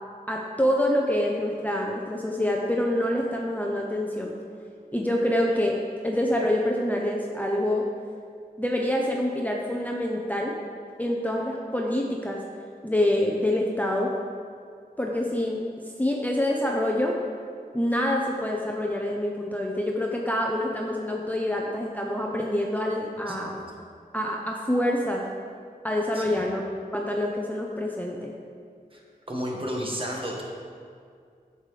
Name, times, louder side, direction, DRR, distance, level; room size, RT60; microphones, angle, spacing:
voice 1, 0.3-4.3 4.9-7.9 8.6-10.6 11.0-12.4 12.8-14.1 15.0-15.6 16.0-17.2 17.7-23.5 24.1-25.2 25.8-26.6 26.9-28.3, left 1 dB, 10° left, -1 dB, 0.6 m, -26 dB
voice 2, 23.3-23.6 26.1-26.4 28.9-29.0 29.3-30.4, equal, 35° right, -2 dB, 1.4 m, -32 dB
8.5 x 6.8 x 3.3 m, 2.2 s
wide cardioid pair, 70°, 16 cm